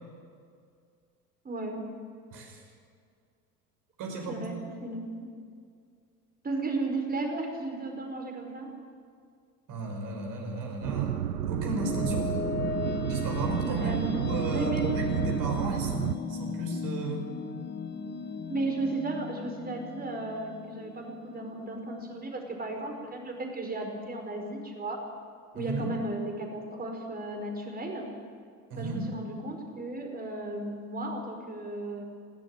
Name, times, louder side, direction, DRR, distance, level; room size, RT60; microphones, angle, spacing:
voice 1, 1.4-1.8 4.3-4.5 4.8-5.0 6.4-8.7 13.6-14.9 18.5-25.0 25.5-28.1 28.7-32.0, right 2 dB, 20° right, 3 dB, 4.9 m, -34 dB
voice 2, 4.0-4.6 9.7-12.4 13.1-17.2 25.5-25.9 28.7-29.1, right 2 dB, 45° right, 2 dB, 5.7 m, -35 dB
sound 1, 10.8-16.2, right 11 dB, 85° right, 0.5 m, -31 dB
sound 2, 10.9-22.2, left 5 dB, 20° left, 1.9 m, -37 dB
20.5 x 17.0 x 7.6 m, 2.2 s
figure-of-eight pair, 70°, 46 cm